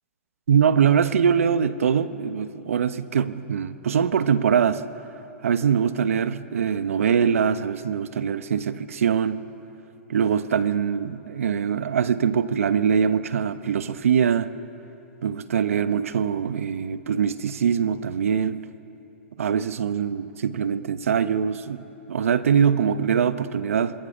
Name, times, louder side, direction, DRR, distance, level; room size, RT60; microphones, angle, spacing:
voice 1, 0.5-4.8 5.4-9.4 10.1-14.5 15.2-18.6 19.4-21.8 22.1-23.9, right 7 dB, 80° right, 1.1 m, -23 dB
27.0 x 21.5 x 6.8 m
hypercardioid pair, 120°, 7 cm